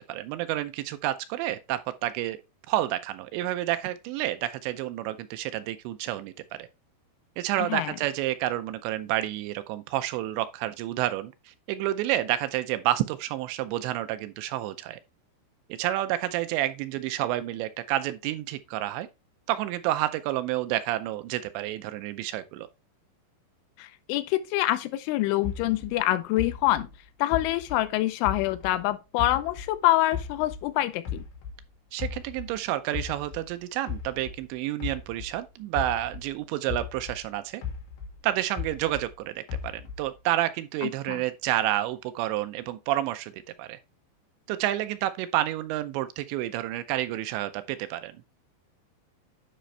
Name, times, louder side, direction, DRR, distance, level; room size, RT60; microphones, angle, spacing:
voice 1, 0.1-2.4 2.7-6.3 6.6-6.7 7.4-15.0 15.7-19.1 19.5-22.7 31.9-37.6 38.2-43.3 43.6-43.8 44.5-48.2, right 14 dB, 80° right, 2.7 m, -29 dB
voice 2, 7.6-7.9 23.8-26.9 27.2-31.2 40.8-41.2, left 16 dB, 85° left, 3.2 m, -26 dB
sound 1, 25.4-28.8 29.2-31.6 32.0-36.3 36.7-39.1 39.5-40.2, left 7 dB, 70° left, 4.1 m, -37 dB
10.0 x 5.1 x 3.2 m
omnidirectional pair, 5.4 m